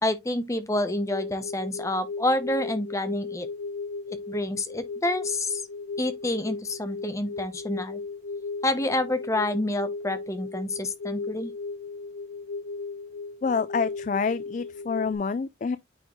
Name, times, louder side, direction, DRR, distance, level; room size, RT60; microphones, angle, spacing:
voice 1, 0.0-3.5 4.3-5.6 6.0-8.0 8.6-11.5, left 1 dB, 15° left, 0.8 m, -28 dB
sound 1, 0.7-15.1, left 4 dB, 75° left, 1.4 m, -36 dB
voice 2, 13.4-15.8, left 5 dB, 40° left, 0.3 m, -27 dB
9.2 x 3.6 x 3.0 m
head